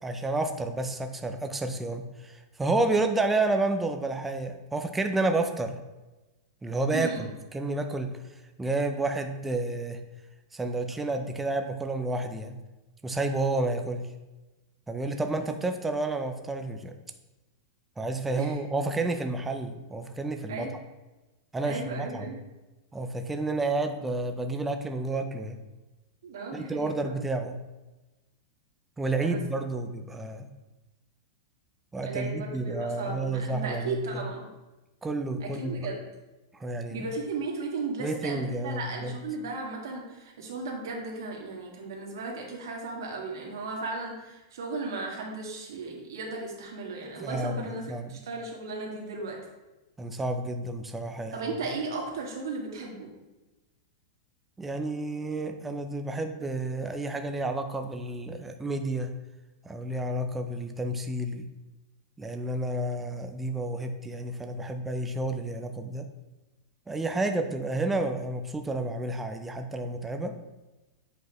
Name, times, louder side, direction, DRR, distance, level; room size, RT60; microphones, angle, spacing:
voice 1, 0.0-5.8 6.6-7.1 7.5-10.0 10.5-12.6 13.0-14.1 14.9-16.9 18.0-20.7 21.5-22.3 22.9-25.6 26.5-27.7 29.0-30.5 31.9-34.2 35.0-35.9 36.5-37.1 38.0-39.1 47.2-48.1 50.0-51.5 54.6-59.1 59.6-61.5 62.2-66.1 66.9-70.4, right 2 dB, 5° right, 6 dB, 0.4 m, -30 dB
voice 2, 6.9-7.3 18.3-18.6 20.5-20.7 21.6-22.4 26.2-27.2 29.2-29.4 32.0-34.4 35.4-36.0 36.9-47.8 48.1-49.4 51.3-53.1, right 3 dB, 80° right, -1 dB, 1.7 m, -35 dB
7.9 x 4.9 x 3.0 m, 1.1 s
supercardioid pair, 175°, 2 cm